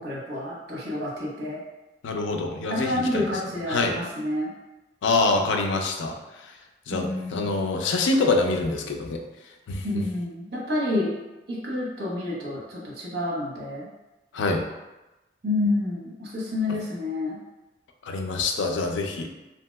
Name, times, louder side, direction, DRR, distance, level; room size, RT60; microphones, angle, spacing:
voice 1, 0.0-1.6 2.7-4.5 6.9-7.6 9.8-11.1 11.5-13.9 15.4-17.4, left 2 dB, 60° right, -5 dB, 0.8 m, -29 dB
voice 2, 2.0-3.2 3.7-4.0 5.0-6.1 6.9-9.2 9.7-9.8 14.3-14.7 18.0-19.3, left 3 dB, 85° left, 3 dB, 0.4 m, -25 dB
2.8 x 2.7 x 2.2 m, 1.1 s
head